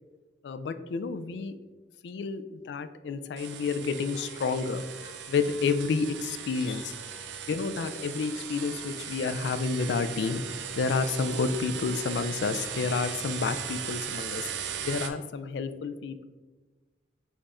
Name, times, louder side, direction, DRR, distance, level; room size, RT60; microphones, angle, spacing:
voice 1, 0.4-1.6 2.0-6.9 7.5-10.4 10.8-14.5 14.8-16.2, left 4 dB, 70° left, 11 dB, 0.3 m, -30 dB
sound 1, 3.4-15.1, right 7 dB, 85° right, 0.5 m, -38 dB
5.2 x 2.4 x 4.1 m, 1.3 s
head